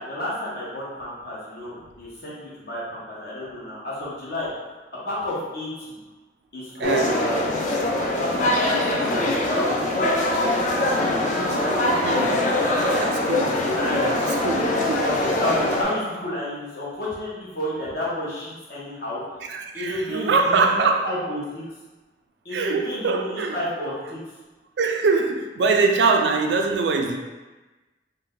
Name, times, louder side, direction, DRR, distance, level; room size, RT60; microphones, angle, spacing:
voice 1, 0.0-4.8 5.0-6.0 6.5-7.5 8.2-10.1 13.8-14.0 15.0-19.2 19.7-21.6 22.4-24.2, left 1 dB, 60° left, -7 dB, 1.0 m, -31 dB
sound 1, 6.8-15.8, left 1 dB, 45° left, 0.4 m, -23 dB
voice 2, 6.8-7.2 12.0-12.4 13.0-15.1 19.5-21.1 22.5-23.6 24.8-27.2, right 4 dB, 70° right, 3 dB, 0.3 m, -23 dB
2.6 x 2.1 x 3.6 m, 1.2 s
head